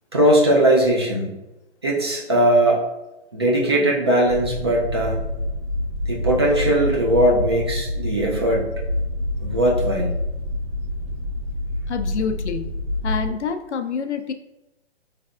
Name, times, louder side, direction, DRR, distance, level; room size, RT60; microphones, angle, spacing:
voice 1, 0.1-1.3 1.8-2.8 3.3-5.2 6.1-8.7 9.4-10.2, right 1 dB, 25° right, -2 dB, 0.4 m, -19 dB
sound 1, 4.3-13.3, left 1 dB, 65° right, 0.8 m, -27 dB
voice 2, 11.9-12.8 13.0-14.3, left 6 dB, 80° left, 7 dB, 0.5 m, -27 dB
3.9 x 3.3 x 2.4 m, 0.98 s
figure-of-eight pair, 140°, 34 cm